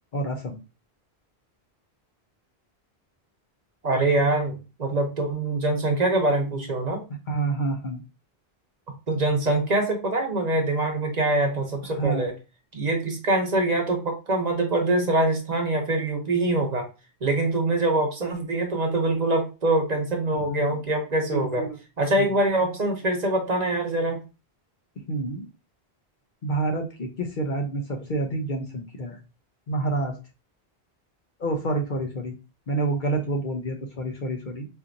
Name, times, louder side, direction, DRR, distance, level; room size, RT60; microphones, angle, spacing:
voice 1, 0.1-0.6 7.3-8.0 12.0-12.3 20.3-20.6 21.3-21.8 25.1-25.5 26.4-29.2 29.7-30.1 31.4-32.3 32.7-34.7, right 2 dB, 55° left, 3 dB, 0.8 m, -28 dB
voice 2, 3.8-7.0 9.1-12.3 12.7-16.9 17.2-21.6 22.0-24.2, right 2 dB, 45° right, 2 dB, 0.8 m, -24 dB
4.3 x 2.7 x 2.5 m, 0.30 s
omnidirectional pair, 1.1 m